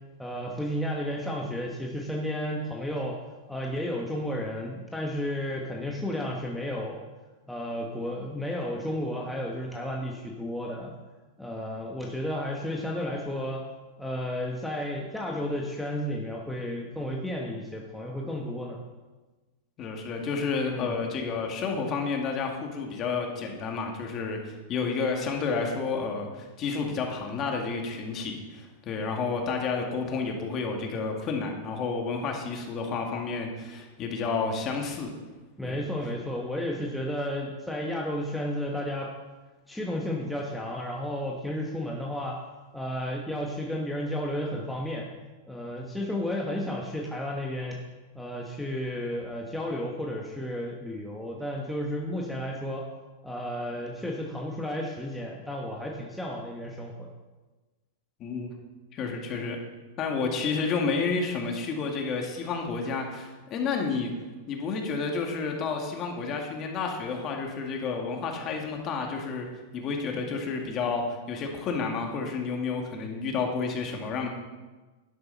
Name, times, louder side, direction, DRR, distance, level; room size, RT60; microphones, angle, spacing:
voice 1, 0.2-3.2 3.5-7.0 7.5-10.9 11.4-13.6 14.0-18.8 20.7-21.0 35.6-39.1 39.7-42.4 42.7-45.1 45.4-47.8 48.1-52.9 53.2-57.1, left 1 dB, 5° left, -1 dB, 1.3 m, -32 dB
voice 2, 19.8-35.1 35.6-35.8 58.2-58.5 58.9-59.6 60.0-64.1 64.5-69.5 69.7-74.3, left 4 dB, 35° left, 2 dB, 2.2 m, -30 dB
11.0 x 10.5 x 4.1 m, 1.2 s
hypercardioid pair, 135°, 0 cm